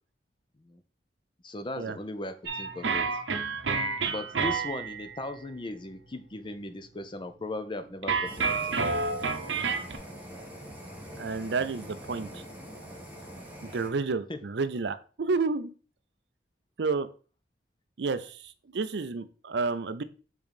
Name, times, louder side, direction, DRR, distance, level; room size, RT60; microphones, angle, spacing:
voice 1, 1.4-3.1 4.1-8.6 14.3-14.4, left 2 dB, 25° left, 0.6 m, -38 dB
sound 1, 2.5-5.2 8.0-10.0, right 4 dB, 80° right, 0.9 m, -29 dB
Fire, 8.2-13.9, equal, 10° right, 1.5 m, -44 dB
voice 2, 11.2-12.4 13.6-15.7 16.8-17.1 18.0-20.0, right 4 dB, 65° right, 0.5 m, -30 dB
5.1 x 3.8 x 5.1 m
head